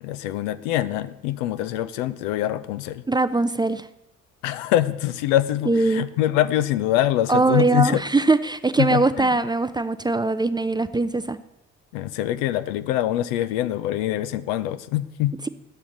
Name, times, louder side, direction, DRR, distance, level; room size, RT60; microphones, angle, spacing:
voice 1, 0.0-3.0 4.4-8.0 8.8-9.3 11.9-15.3, left 13 dB, 75° left, 13 dB, 0.6 m, -24 dB
voice 2, 3.1-3.9 5.7-6.0 7.3-11.4, right 3 dB, 10° right, 12 dB, 0.4 m, -21 dB
12.0 x 7.1 x 3.9 m, 0.86 s
hypercardioid pair, 45°, 38 cm